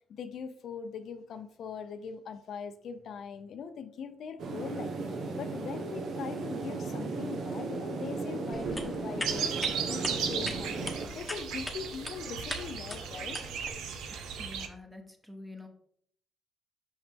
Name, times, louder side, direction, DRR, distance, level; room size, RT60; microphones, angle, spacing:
voice 1, 0.1-13.4, left 6 dB, 65° left, 9 dB, 0.5 m, -41 dB
sound 1, 4.4-11.1, right 3 dB, 65° right, 1.0 m, -36 dB
sound 2, 8.5-13.7, left 2 dB, 15° left, 1.1 m, -41 dB
sound 3, 9.2-14.7, right 7 dB, 85° right, 0.7 m, -36 dB
voice 2, 14.1-15.7, left 2 dB, 10° right, 4 dB, 1.2 m, -47 dB
5.8 x 5.5 x 3.5 m, 0.65 s
cardioid pair, 90°, 0 cm